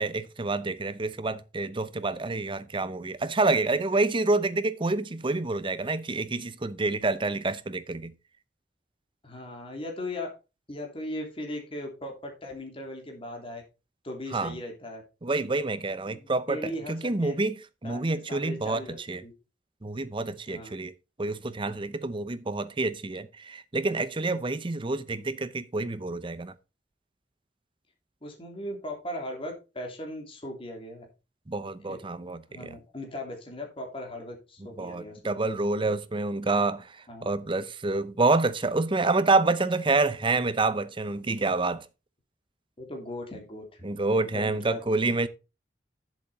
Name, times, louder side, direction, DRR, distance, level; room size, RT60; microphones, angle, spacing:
voice 1, 0.0-8.1 14.3-14.5 15.2-17.6 17.8-19.2 19.8-20.9 21.2-26.5 31.5-32.7 34.8-36.9 37.2-41.8 43.8-45.3, right 3 dB, 30° right, 0.7 m, -28 dB
voice 2, 9.2-10.3 10.7-13.6 14.0-15.0 16.0-17.4 17.8-19.0 19.2-19.3 20.5-20.7 28.2-31.1 31.8-32.0 32.5-35.3 37.1-37.3 42.8-43.8 44.2-44.8, left 1 dB, 30° left, 3.1 m, -38 dB
10.5 x 7.4 x 4.2 m
head